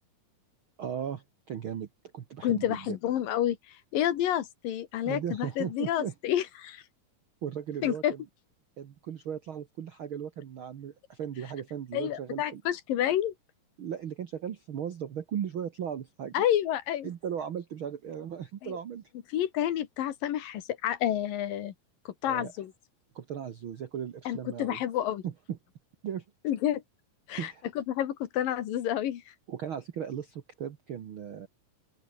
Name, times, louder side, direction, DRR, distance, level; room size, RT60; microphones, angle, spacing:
voice 1, 0.8-1.9 2.1-3.0 5.0-6.1 7.4-8.2 8.8-12.6 13.8-16.4 17.0-19.1 22.2-22.5 23.1-24.8 25.2-25.6 26.0-26.2 27.4-27.6 29.5-31.5, right 8 dB, 65° right, 1.3 m, -37 dB
voice 2, 2.4-6.8 7.8-8.1 11.9-13.3 16.3-17.1 18.6-18.8 19.3-21.7 22.1-22.7 24.3-25.2 26.4-26.8 27.3-29.2, left 11 dB, 75° left, 3.2 m, -29 dB
open air
omnidirectional pair, 4.1 m